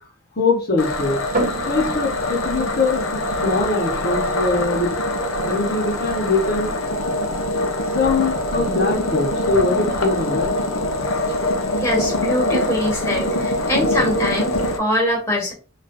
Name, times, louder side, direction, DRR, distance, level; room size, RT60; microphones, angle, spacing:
voice 1, 0.4-1.2 1.7-4.9 5.4-6.8 7.9-10.5, left 3 dB, 50° left, -3 dB, 1.4 m, -22 dB
sound 1, 0.8-14.8, left 1 dB, 70° left, 0.9 m, -23 dB
sound 2, 1.3-14.8, right 2 dB, 40° right, 1.1 m, -36 dB
voice 2, 11.8-15.5, left 1 dB, 15° left, -3 dB, 1.7 m, -23 dB
4.2 x 3.0 x 2.7 m, 0.34 s
head